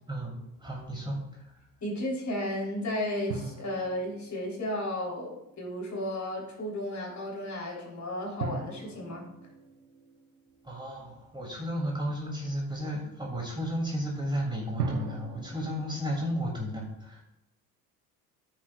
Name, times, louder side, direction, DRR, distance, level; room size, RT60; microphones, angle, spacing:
voice 1, 0.1-1.5 10.6-17.2, equal, 10° right, -2 dB, 3.1 m, -33 dB
voice 2, 1.8-9.3, left 1 dB, 35° left, -2 dB, 4.0 m, -34 dB
sound 1, 3.3-5.6 8.4-11.3 14.8-16.7, right 5 dB, 80° right, 1.3 m, -40 dB
14.5 x 7.4 x 2.5 m, 0.86 s
figure-of-eight pair, 60°, 46 cm